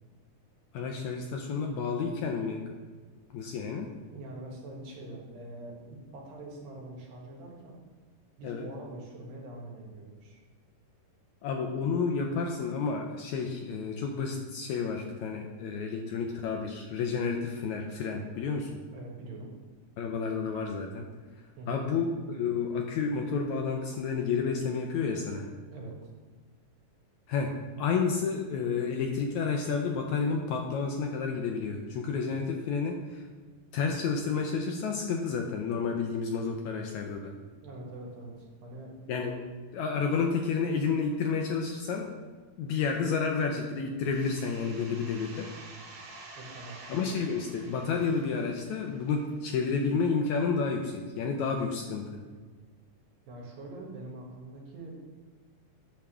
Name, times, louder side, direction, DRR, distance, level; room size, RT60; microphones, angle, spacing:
voice 1, 0.7-2.7 3.3-3.9 8.4-8.7 11.4-18.7 20.0-21.1 21.7-25.5 27.3-27.5 27.8-33.2 33.7-37.3 39.1-39.3 39.7-42.1 42.6-45.5 46.9-52.2, left 5 dB, 80° left, 2 dB, 1.7 m, -30 dB
voice 2, 4.1-7.8 8.4-10.4 18.9-19.5 21.6-21.9 25.7-26.1 37.6-38.9 46.4-46.8 53.3-54.9, right 2 dB, 85° right, -1 dB, 3.4 m, -44 dB
sound 1, 44.1-49.6, right 3 dB, 50° right, 2.5 m, -49 dB
10.5 x 3.6 x 7.1 m, 1.5 s
omnidirectional pair, 4.0 m